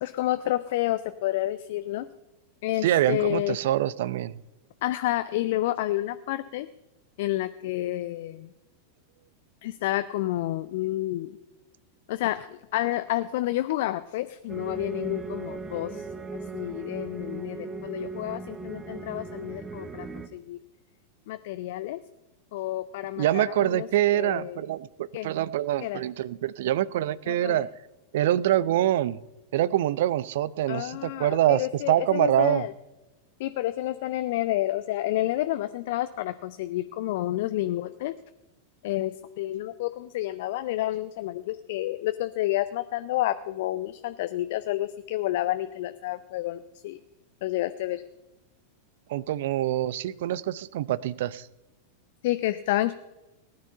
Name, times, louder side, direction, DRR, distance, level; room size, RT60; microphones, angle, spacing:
voice 1, 0.0-2.1 2.6-3.6 4.8-6.7 7.2-8.5 9.6-11.3 12.1-16.0 16.5-20.1 20.3-20.6 21.3-22.0 22.5-23.9 24.1-24.6 25.1-25.3 25.8-26.0 27.3-27.7 30.7-32.7 33.4-38.1 38.8-47.0 47.4-48.0 52.2-52.9, left 15 dB, 50° left, 11 dB, 0.5 m, -29 dB
voice 2, 2.8-4.3 23.2-27.7 28.1-29.2 29.5-32.7 49.1-51.5, right 13 dB, 55° right, 20 dB, 0.5 m, -25 dB
sound 1, 14.5-20.3, right 4 dB, 15° right, 1.0 m, -38 dB
18.5 x 9.7 x 5.6 m, 1.0 s
figure-of-eight pair, 90°, 0 cm